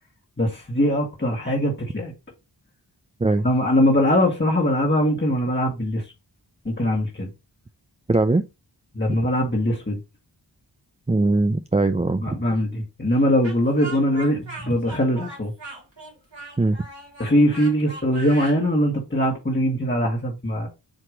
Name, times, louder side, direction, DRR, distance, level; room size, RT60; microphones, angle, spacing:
voice 1, 0.4-2.1 3.4-6.0 6.6-7.3 8.9-10.0 12.2-15.5 17.2-20.7, equal, 25° left, 1.5 m, -21 dB
voice 2, 8.1-8.4 11.1-12.4 16.6-16.8, right 2 dB, 15° right, 0.4 m, -20 dB
Speech, 13.4-18.6, right 2 dB, 85° right, 3.2 m, -39 dB
7.9 x 2.9 x 4.9 m
wide cardioid pair, 45°, 43 cm